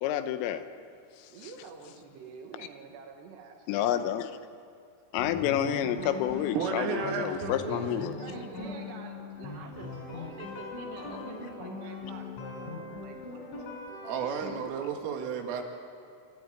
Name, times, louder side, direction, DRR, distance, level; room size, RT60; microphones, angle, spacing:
voice 1, 0.0-0.6 3.7-4.3 5.1-8.2, left 10 dB, 85° left, 10 dB, 3.4 m, -29 dB
voice 2, 1.3-4.0 7.0-13.7, right 5 dB, 65° right, 3 dB, 3.3 m, -47 dB
sound 1, 5.2-14.6, left 3 dB, 70° left, 7.2 m, -40 dB
voice 3, 6.6-7.9 14.0-15.6, right 6 dB, 80° right, 3 dB, 4.4 m, -32 dB
27.5 x 12.5 x 9.1 m, 2.4 s
omnidirectional pair, 5.8 m